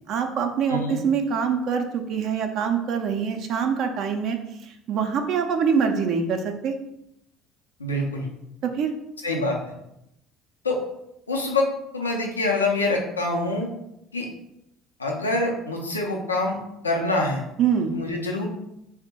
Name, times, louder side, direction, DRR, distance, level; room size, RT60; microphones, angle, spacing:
voice 1, 0.0-4.4 4.6-6.7 8.6-8.9 17.6-17.9, right 6 dB, 55° right, 5 dB, 0.4 m, -24 dB
voice 2, 7.8-8.3 9.2-9.7 10.6-10.8 11.3-11.7 11.9-13.7 14.1-14.3 15.0-16.6 16.8-17.4 17.9-18.5, left 2 dB, 90° left, 0 dB, 0.5 m, -25 dB
3.5 x 2.1 x 4.1 m, 0.82 s
figure-of-eight pair, 60°, 0 cm